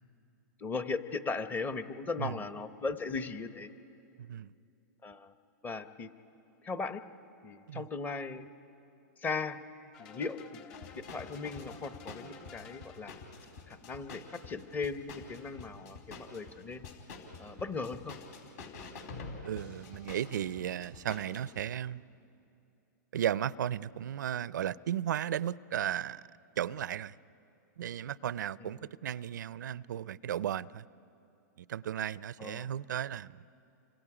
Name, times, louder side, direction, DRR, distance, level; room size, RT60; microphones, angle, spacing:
voice 1, 0.6-3.7 5.0-5.3 5.6-6.1 6.6-7.0 7.4-8.5 9.2-9.6 10.0-10.6 10.9-13.1 13.7-16.9 17.4-18.2 28.6-28.9 32.4-32.7, left 4 dB, 20° left, 0.9 m, -38 dB
voice 2, 4.2-4.5 7.7-7.8 19.4-22.0 23.1-26.3 26.6-27.1 27.8-30.8 31.7-33.4, right 10 dB, 80° right, 0.4 m, -35 dB
sound 1, 9.9-13.4, left 7 dB, 40° left, 3.7 m, -53 dB
sound 2, 10.7-21.6, left 4 dB, 60° left, 4.5 m, -47 dB
29.5 x 26.0 x 4.9 m
hypercardioid pair, 135°, 10 cm